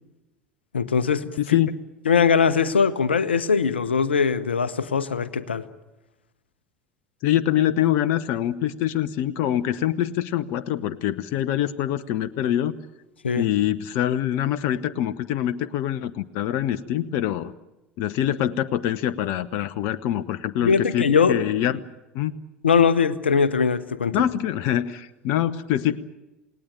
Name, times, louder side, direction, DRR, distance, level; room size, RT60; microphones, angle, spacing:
voice 1, 0.7-1.6 2.1-5.6 13.2-13.5 20.6-21.4 22.6-24.3, left 6 dB, 75° left, 1.0 m, -21 dB
voice 2, 1.4-1.7 7.2-12.7 13.4-17.5 18.0-21.8 22.1-22.3 24.1-26.0, left 11 dB, 50° left, 0.9 m, -24 dB
28.0 x 19.0 x 9.3 m
figure-of-eight pair, 70°, 6 cm